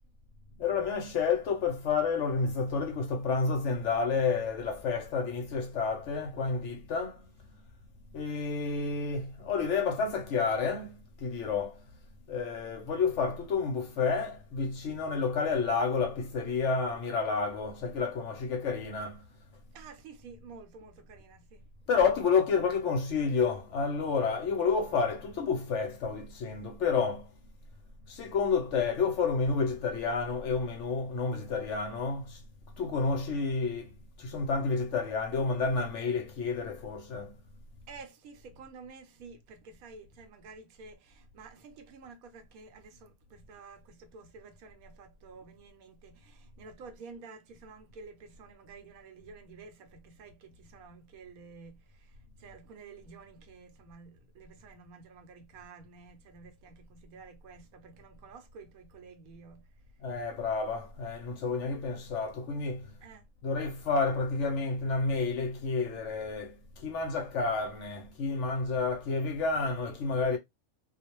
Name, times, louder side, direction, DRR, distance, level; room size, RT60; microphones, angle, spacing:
voice 1, 0.6-7.3 8.1-11.8 12.3-19.2 21.9-27.3 28.1-32.4 32.8-37.3 60.0-62.9 63.4-70.4, left 4 dB, 65° left, 0.8 m, -30 dB
voice 2, 19.7-21.6 37.9-59.7 63.0-63.3, right 4 dB, 80° right, 1.0 m, -51 dB
2.4 x 2.1 x 2.8 m
omnidirectional pair, 1.5 m